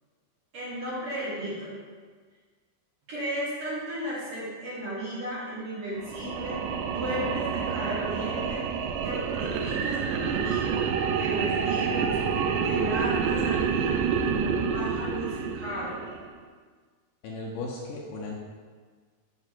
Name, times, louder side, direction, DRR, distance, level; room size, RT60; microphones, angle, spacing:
voice 1, 0.5-1.8 3.1-8.7 9.0-10.9 11.2-12.2 12.5-16.0, equal, 50° right, -9 dB, 2.1 m, -35 dB
sound 1, 6.0-16.3, right 6 dB, 85° right, 1.9 m, -28 dB
voice 2, 17.2-18.3, left 3 dB, 75° left, -3 dB, 2.2 m, -36 dB
7.9 x 3.3 x 5.9 m, 1.5 s
omnidirectional pair, 4.3 m